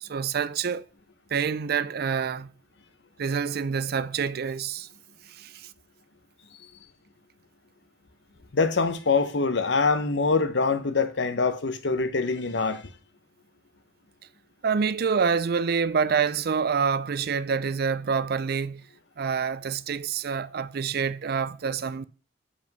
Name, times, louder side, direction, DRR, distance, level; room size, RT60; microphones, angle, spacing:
voice 1, 0.0-0.8 1.3-2.5 3.2-4.9 5.3-5.7 14.6-18.8 19.2-22.1, right 6 dB, 55° right, 0.4 m, -27 dB
voice 2, 8.5-12.9, left 4 dB, 70° left, 0.9 m, -24 dB
7.4 x 5.1 x 5.3 m
head